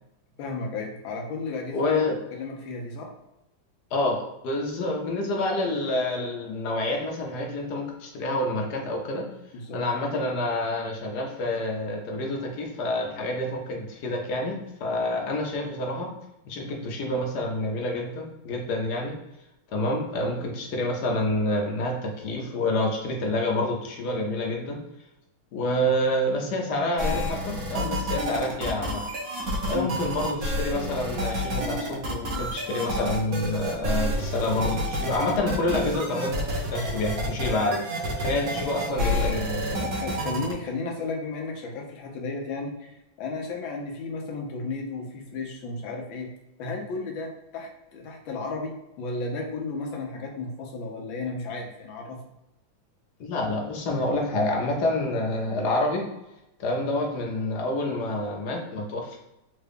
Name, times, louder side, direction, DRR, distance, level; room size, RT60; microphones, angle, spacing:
voice 1, 0.4-2.0 2.4-3.1 9.5-9.8 29.7-30.0 39.8-46.3 46.6-52.2, left 3 dB, 80° left, 1 dB, 1.5 m, -33 dB
voice 2, 1.7-2.1 3.9-9.3 9.7-16.1 16.4-19.1 19.7-24.8 25.5-29.0 29.6-39.9 53.2-56.1 56.6-59.2, left 1 dB, 65° left, 1 dB, 1.2 m, -28 dB
sound 1, 27.0-40.5, equal, 60° right, 1.0 m, -29 dB
3.7 x 2.2 x 3.4 m, 0.89 s
omnidirectional pair, 2.1 m